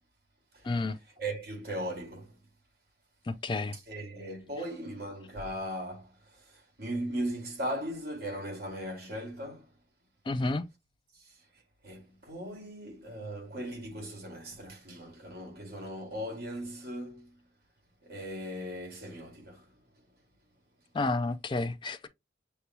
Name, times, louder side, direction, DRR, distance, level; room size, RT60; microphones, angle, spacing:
voice 1, 0.6-1.0 3.3-3.8 10.3-10.6 20.9-22.1, left 2 dB, 25° left, 0.3 m, -30 dB
voice 2, 1.2-2.3 3.9-9.7 11.1-11.4 11.8-17.4 18.0-19.7, right 1 dB, 55° right, 2.2 m, -38 dB
6.7 x 2.3 x 2.9 m
head